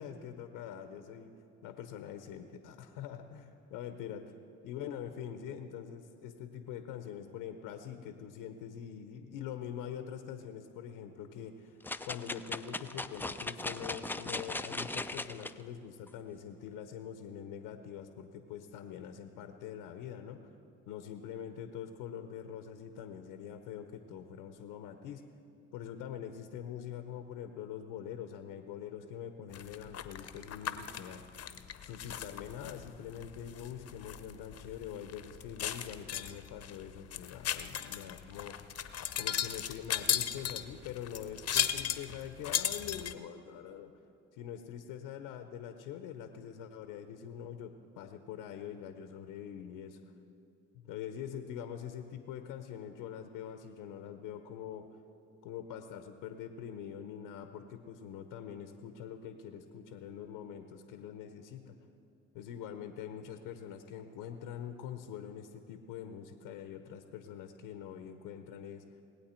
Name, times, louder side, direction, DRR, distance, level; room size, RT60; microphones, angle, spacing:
voice 1, 0.0-1.3 1.6-4.3 4.6-11.8 12.0-20.5 20.9-25.2 25.7-31.2 31.8-38.6 39.1-43.9 44.3-50.0 50.7-54.9 55.4-61.8 62.3-68.8, left 9 dB, 75° left, 8 dB, 0.8 m, -44 dB
sound 1, 11.8-15.5 16.1-16.2, left 2 dB, 5° left, 0.4 m, -38 dB
sound 2, 29.5-43.1, left 10 dB, 45° left, 0.8 m, -37 dB
20.5 x 8.5 x 4.4 m, 2.7 s
hypercardioid pair, 55°, 33 cm